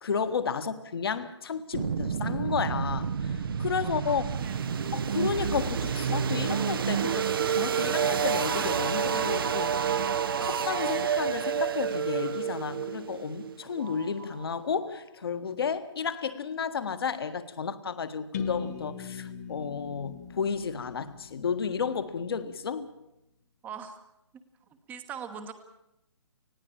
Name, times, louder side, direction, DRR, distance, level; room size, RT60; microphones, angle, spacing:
voice 1, 0.0-4.2 4.9-9.7 10.4-22.9, left 6 dB, 50° left, 1.6 m, -32 dB
sound 1, 1.7-14.5, right 7 dB, 50° right, 0.9 m, -29 dB
voice 2, 4.4-4.9 23.6-24.0 24.9-25.5, right 7 dB, 10° right, 1.1 m, -41 dB
sound 2, 18.3-22.2, left 6 dB, 35° left, 1.7 m, -39 dB
20.0 x 16.0 x 8.7 m
figure-of-eight pair, 140°, 16 cm